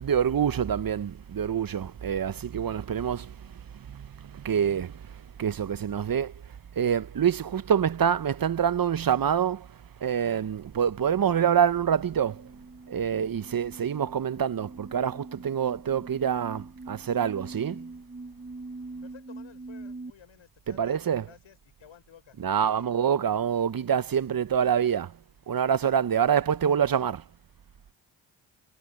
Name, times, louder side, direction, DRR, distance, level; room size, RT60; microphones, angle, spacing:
voice 1, 0.0-12.5 12.9-17.9 20.7-21.3 22.4-25.2 25.5-27.2, right 8 dB, 45° right, 1.0 m, -26 dB
sound 1, 12.0-20.1, right 3 dB, 25° right, 1.5 m, -44 dB
voice 2, 19.0-23.0, left 9 dB, 75° left, 6.4 m, -54 dB
supercardioid pair, 40°, 47 cm